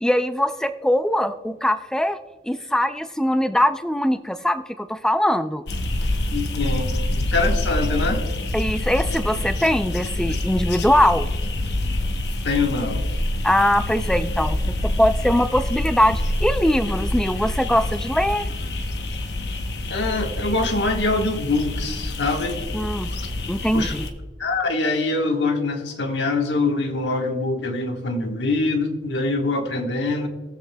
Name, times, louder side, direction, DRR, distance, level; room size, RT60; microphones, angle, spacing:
voice 1, 0.0-2.2 2.5-5.6 8.5-11.3 13.4-14.6 14.8-18.5 22.7-23.1 23.5-24.1, equal, 5° left, 10 dB, 0.3 m, -21 dB
sound 1, 5.7-24.1, left 1 dB, 75° left, 0.9 m, -26 dB
voice 2, 6.3-8.2 12.4-13.1 19.9-22.6 23.7-23.9 24.4-30.3, left 3 dB, 90° left, 4 dB, 1.2 m, -24 dB
22.0 x 7.7 x 2.2 m, 1.3 s
head